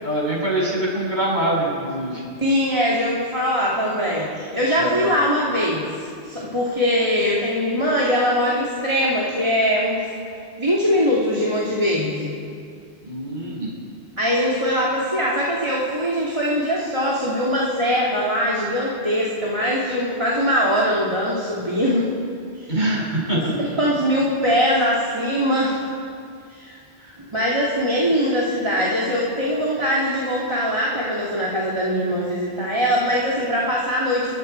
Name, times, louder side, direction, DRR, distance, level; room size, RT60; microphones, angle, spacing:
voice 1, 0.0-2.2 4.8-4.9 13.0-13.7 22.7-23.5 27.0-27.1, right 1 dB, 40° right, -4 dB, 7.1 m, -24 dB
voice 2, 2.4-10.0 10.6-12.3 14.2-22.1 22.5-22.8 23.3-25.9 26.5-26.8 27.2-34.3, equal, 25° right, -6 dB, 2.8 m, -22 dB
28.0 x 23.0 x 4.7 m, 2.3 s
omnidirectional pair, 1.2 m